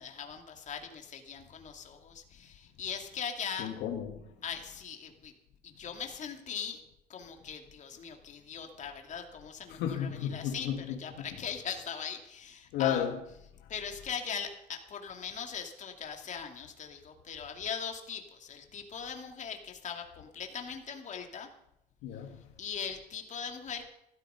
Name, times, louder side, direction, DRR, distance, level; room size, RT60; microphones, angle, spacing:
voice 1, 0.0-3.7 4.4-5.3 5.6-6.8 7.1-13.0 13.7-21.5 22.6-23.9, left 7 dB, 45° left, 2.4 m, -40 dB
voice 2, 3.6-4.3 9.7-11.3 12.7-13.2 13.6-13.7 22.0-22.5, left 9 dB, 90° left, 1.7 m, -33 dB
15.0 x 13.0 x 5.6 m
cardioid pair, 110°, 17 cm